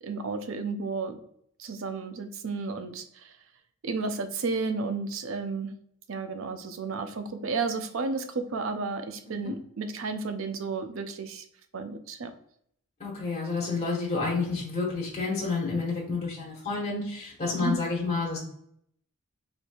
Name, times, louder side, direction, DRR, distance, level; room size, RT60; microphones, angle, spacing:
voice 1, 0.0-1.2 1.6-3.3 3.8-5.7 6.1-11.4 11.7-12.3 17.6-17.8, right 4 dB, 65° right, 8 dB, 0.5 m, -32 dB
voice 2, 13.0-18.4, left 4 dB, 30° left, -4 dB, 1.3 m, -30 dB
4.3 x 3.1 x 2.3 m, 0.68 s
head